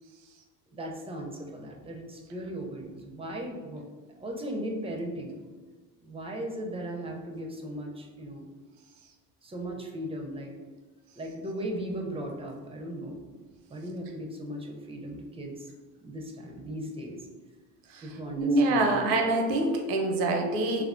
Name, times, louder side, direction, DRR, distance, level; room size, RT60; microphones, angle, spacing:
voice 1, 0.7-3.8 4.1-5.4 6.0-8.5 9.4-10.5 11.2-13.3 13.7-15.7 16.0-17.2 18.0-19.0, right 1 dB, 15° right, 0 dB, 0.4 m, -37 dB
voice 2, 18.4-20.8, right 2 dB, 75° right, 3 dB, 0.6 m, -25 dB
3.2 x 2.1 x 2.4 m, 1.4 s
hypercardioid pair, 65°, 46 cm